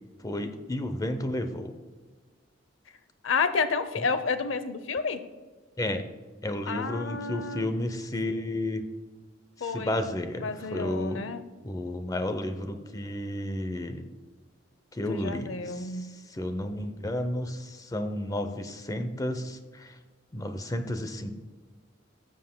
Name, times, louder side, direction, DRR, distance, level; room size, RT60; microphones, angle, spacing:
voice 1, 0.2-1.7 4.0-4.1 5.8-6.0 6.4-8.8 9.6-11.2 11.6-14.1 14.9-15.9 16.3-19.9 20.3-21.3, left 1 dB, 20° left, 8 dB, 0.6 m, -32 dB
voice 2, 3.2-5.2 6.7-7.7 9.6-10.0 10.4-11.4 15.1-16.1, left 4 dB, 85° left, 12 dB, 0.6 m, -30 dB
15.0 x 7.5 x 2.2 m, 1.4 s
head